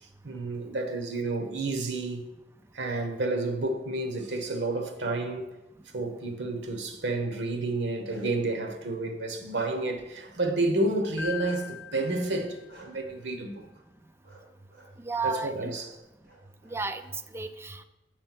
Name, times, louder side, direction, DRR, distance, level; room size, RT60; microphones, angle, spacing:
voice 1, 0.2-2.3 2.7-5.5 5.9-13.7 15.2-15.9, right 2 dB, 90° right, 1.0 m, -30 dB
Bark, 7.7-8.5 9.0-10.0 11.4-11.6 12.7-12.9 14.2-14.4 14.7-14.9 15.7-15.9 16.2-17.1, right 2 dB, 65° right, 3.1 m, -51 dB
Keyboard (musical), 11.2-13.0, left 7 dB, 70° left, 0.5 m, -40 dB
voice 2, 15.0-15.7 16.6-17.8, right 4 dB, 15° right, 0.3 m, -33 dB
7.2 x 4.4 x 5.9 m
head